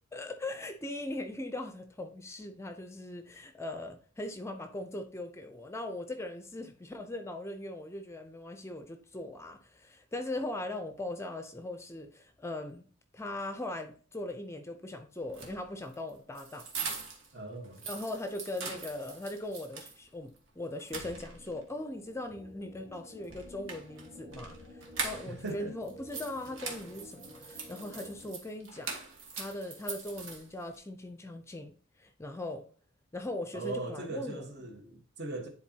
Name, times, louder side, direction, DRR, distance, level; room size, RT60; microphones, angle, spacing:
voice 1, 0.1-12.8 13.1-16.7 17.8-28.9 29.3-32.7 33.1-34.5, left 1 dB, 15° left, 0.5 m, -40 dB
sound 1, 15.2-17.3 17.6-20.0 20.4-20.5 20.8-21.6 23.2-25.5 25.8-30.8, right 4 dB, 75° right, 1.5 m, -42 dB
voice 2, 17.3-17.8 25.3-25.7 33.5-35.5, right 2 dB, 60° right, 1.2 m, -39 dB
sound 2, 21.0-28.3, left 1 dB, 35° right, 1.9 m, -52 dB
10.0 x 4.0 x 2.8 m
head